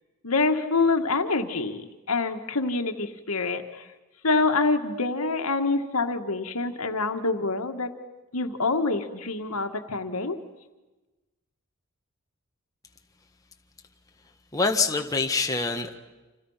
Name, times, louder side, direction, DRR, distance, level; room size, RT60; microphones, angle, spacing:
voice 1, 0.2-3.9 4.2-7.9 8.3-10.4, left 3 dB, 80° left, 6 dB, 1.9 m, -26 dB
voice 2, 14.5-16.0, left 4 dB, 15° left, 3 dB, 1.6 m, -25 dB
30.0 x 27.5 x 5.8 m, 1.1 s
head